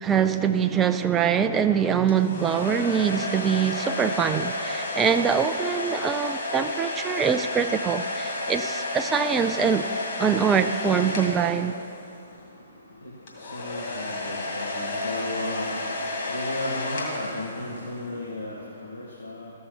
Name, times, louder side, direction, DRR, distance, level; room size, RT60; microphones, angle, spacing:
voice 1, 0.0-9.9 10.2-11.7, right 7 dB, 15° right, 0.3 m, -24 dB
sound 1, 2.1-12.2 13.3-18.0, left 2 dB, 45° left, 2.2 m, -31 dB
voice 2, 11.7-19.5, left 1 dB, 85° left, 1.7 m, -35 dB
14.0 x 6.5 x 4.5 m
figure-of-eight pair, 125°, 0 cm